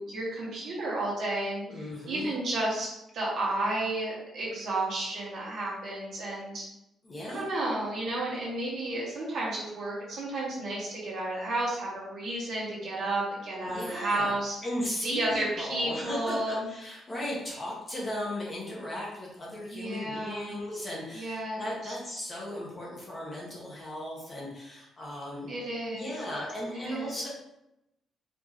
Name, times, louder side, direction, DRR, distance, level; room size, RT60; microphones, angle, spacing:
voice 1, 0.0-6.6 7.3-14.6 15.0-16.7 19.7-20.6 21.1-21.9 25.5-26.1 26.8-27.2, right 1 dB, 60° right, -6 dB, 1.2 m, -32 dB
voice 2, 1.7-2.3 7.0-7.5 13.6-25.5 25.9-27.3, left 1 dB, 25° left, -4 dB, 1.0 m, -36 dB
4.3 x 2.7 x 3.0 m, 0.86 s
cardioid pair, 145°, 0 cm